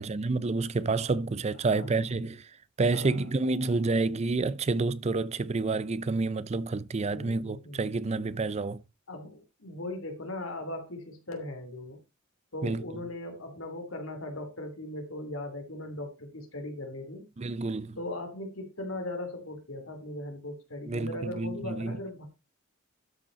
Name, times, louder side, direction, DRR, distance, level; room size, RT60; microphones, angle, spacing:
voice 1, 0.0-8.8 12.6-12.8 17.4-18.0 20.9-22.0, right 3 dB, 35° right, 0.5 m, -29 dB
voice 2, 1.7-2.1 2.9-3.3 3.6-4.2 7.1-7.8 9.1-12.0 12.5-17.3 18.0-22.3, left 1 dB, 85° left, 2.8 m, -39 dB
12.5 x 5.3 x 4.3 m
head